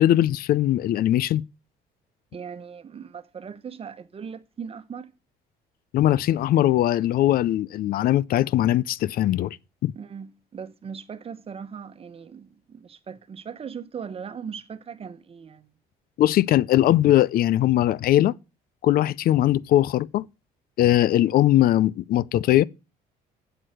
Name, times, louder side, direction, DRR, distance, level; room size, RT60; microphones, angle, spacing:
voice 1, 0.0-1.4 5.9-9.5 9.8-9.9 16.2-18.3 18.8-20.2 20.8-22.6, left 13 dB, 60° left, 0.5 m, -20 dB
voice 2, 2.3-5.1 9.9-15.7, right 6 dB, 35° right, 1.1 m, -39 dB
8.0 x 7.8 x 6.4 m
cardioid pair, 110°, 17 cm